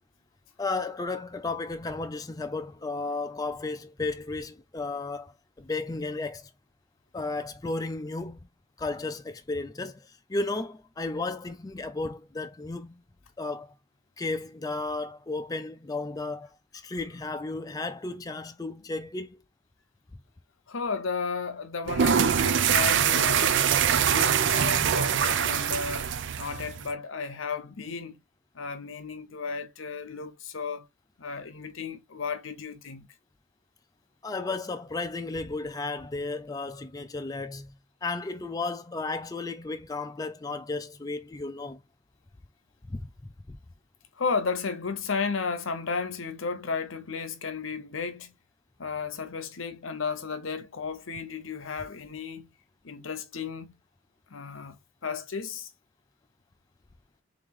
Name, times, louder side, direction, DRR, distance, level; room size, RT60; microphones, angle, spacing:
voice 1, 0.6-6.5 7.1-8.5 8.8-13.0 13.4-13.7 14.2-19.4 34.2-37.7 38.0-41.8 42.9-43.1 43.5-43.6, left 3 dB, 20° left, 0.4 m, -34 dB
voice 2, 20.7-23.7 23.9-28.2 28.5-30.9 31.2-33.1 44.2-48.3 48.8-52.5 52.8-53.7 54.3-55.7, left 5 dB, 75° left, 0.8 m, -34 dB
sound 1, 21.9-26.9, right 8 dB, 60° right, 0.4 m, -24 dB
3.6 x 3.1 x 3.5 m
head